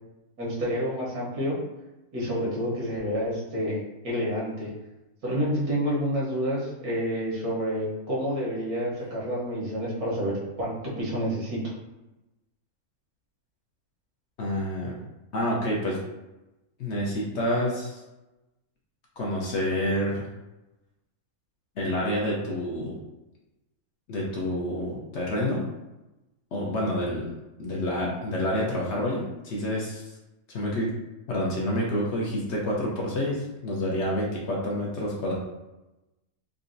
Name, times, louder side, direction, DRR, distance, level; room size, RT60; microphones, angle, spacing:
voice 1, 0.4-1.6 2.1-4.7 5.2-11.7, equal, 85° right, -6 dB, 1.5 m, -29 dB
voice 2, 14.4-15.0 15.3-16.0 16.8-18.0 19.2-20.2 21.8-22.9 24.1-25.6 26.5-27.3 27.6-30.0 30.5-30.9 31.3-35.3, left 1 dB, 60° left, -4 dB, 0.8 m, -28 dB
3.9 x 2.2 x 2.5 m, 1.0 s
omnidirectional pair, 1.5 m